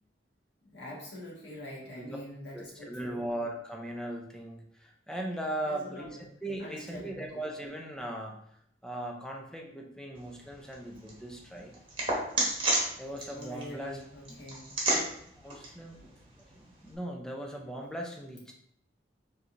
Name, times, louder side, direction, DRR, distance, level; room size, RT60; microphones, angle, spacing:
voice 1, 0.6-3.2 5.6-6.2 6.6-7.4 13.3-14.7, left 1 dB, 65° left, -6 dB, 1.7 m, -45 dB
voice 2, 2.5-6.1 6.4-8.4 8.8-11.7 13.0-14.0 14.9-16.0 16.3-18.5, right 1 dB, 5° left, 0 dB, 0.6 m, -39 dB
sound 1, 10.1-16.9, right 2 dB, 30° right, 1.2 m, -34 dB
4.7 x 3.8 x 2.6 m, 0.72 s
head